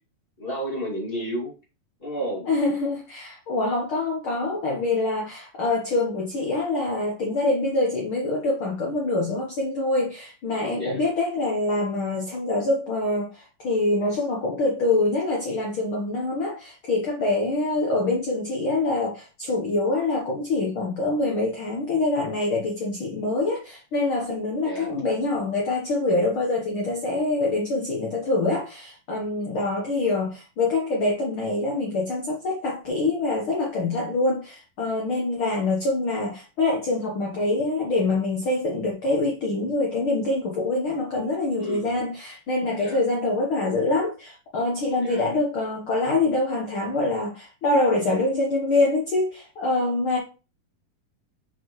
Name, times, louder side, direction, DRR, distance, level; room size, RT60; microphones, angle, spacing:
voice 1, 0.4-1.5 2.0-2.5 10.5-11.0 24.6-24.9 41.6-42.0 42.8-43.0 45.0-45.2, equal, 20° left, 1.8 m, -32 dB
voice 2, 2.5-50.2, left 2 dB, 70° left, 1.2 m, -25 dB
6.6 x 4.7 x 3.0 m
omnidirectional pair, 3.8 m